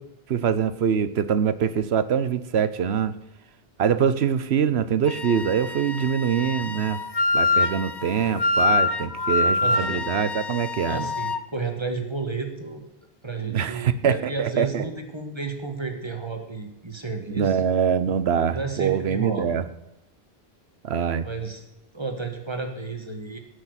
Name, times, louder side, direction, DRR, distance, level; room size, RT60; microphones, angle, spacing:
voice 1, 0.3-3.1 3.8-7.0 7.3-11.1 13.4-14.8 17.4-19.6 20.8-21.3, right 7 dB, 90° right, 14 dB, 1.1 m, -24 dB
Wind instrument woodwind instrument, 5.1-11.4, left 3 dB, 30° left, 0.6 m, -25 dB
voice 2, 9.6-10.0 10.8-12.8 13.2-17.6 18.5-19.6 21.2-21.6 21.9-23.4, right 4 dB, 25° right, 4 dB, 1.8 m, -32 dB
16.5 x 6.6 x 8.1 m, 0.90 s
omnidirectional pair, 1.0 m